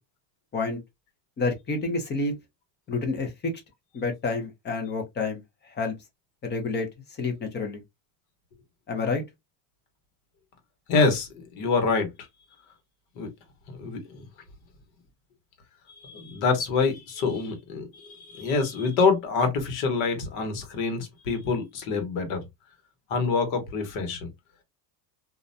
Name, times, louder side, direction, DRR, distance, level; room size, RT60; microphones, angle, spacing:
voice 1, 1.4-2.3 2.9-3.5 3.9-5.4 5.7-5.9 6.4-6.9 7.2-7.8 8.9-9.2, left 3 dB, 20° left, 0.6 m, -28 dB
voice 2, 10.9-12.1 13.2-13.3 13.7-14.2 16.0-22.4 23.1-24.3, left 4 dB, 70° left, 1.2 m, -26 dB
2.4 x 2.1 x 2.6 m
cardioid pair, 135°, 49 cm